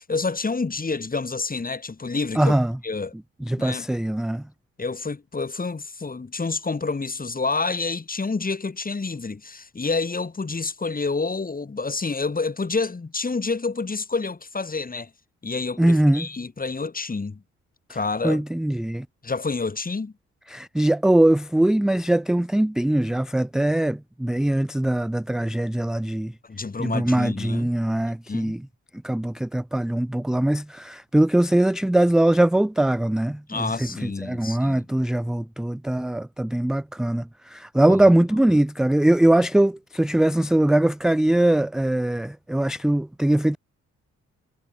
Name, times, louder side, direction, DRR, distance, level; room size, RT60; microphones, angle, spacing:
voice 1, 0.0-2.5 2.8-3.1 3.6-3.9 4.8-15.1 15.4-17.4 17.9-18.4 19.2-20.1 26.5-27.7 28.3-28.6 33.5-34.9 37.9-38.0, left 4 dB, 25° left, 1.9 m, -28 dB
voice 2, 2.4-2.8 3.5-4.4 15.8-16.3 18.2-19.1 20.5-26.3 26.8-28.6 29.0-43.6, right 1 dB, ahead, 0.3 m, -21 dB
hypercardioid pair, 45°, 35 cm